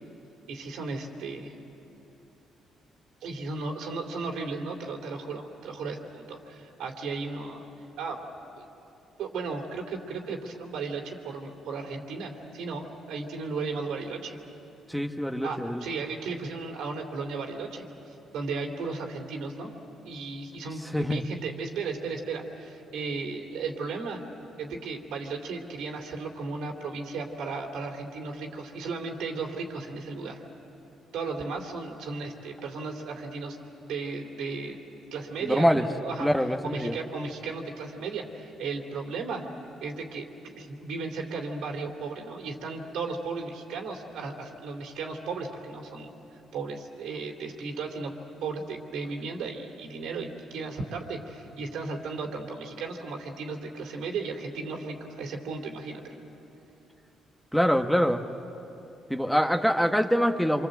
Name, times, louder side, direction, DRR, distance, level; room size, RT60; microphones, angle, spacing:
voice 1, 0.5-1.5 3.2-7.7 8.0-8.2 8.6-8.7 9.2-14.4 15.4-17.9 18.3-19.7 20.0-24.2 24.6-30.4 31.1-33.6 33.8-34.8 35.1-39.4 39.8-48.1 48.4-56.1, right 4 dB, 85° right, 2 dB, 3.0 m, -35 dB
voice 2, 14.9-15.8 20.9-21.2 35.4-35.8 36.2-36.9 57.5-58.2 59.1-60.7, equal, 5° left, 5 dB, 1.2 m, -24 dB
27.0 x 25.0 x 7.9 m, 3.0 s
cardioid pair, 90°, 0 cm